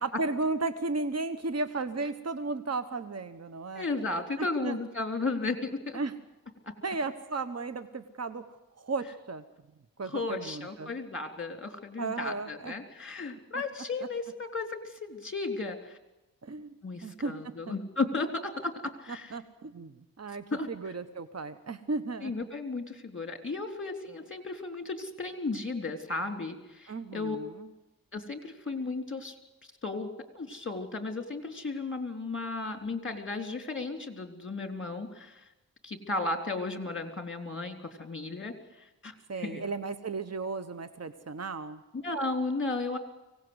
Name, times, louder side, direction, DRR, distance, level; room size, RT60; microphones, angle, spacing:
voice 1, 0.0-3.9 4.4-4.8 5.9-6.1 6.8-8.4 8.8-9.4 10.0-10.9 12.0-12.7 16.4-17.7 19.3-22.3 26.9-27.7 39.3-41.8, right 3 dB, 45° right, 11 dB, 1.2 m, -35 dB
voice 2, 3.7-6.0 6.6-6.7 10.0-16.0 16.8-19.3 20.5-20.7 22.2-27.4 28.1-29.4 29.8-35.5 35.8-39.7 41.9-43.0, left 3 dB, 35° left, 6 dB, 3.7 m, -34 dB
24.5 x 18.0 x 8.1 m, 1.0 s
cardioid pair, 60°, 36 cm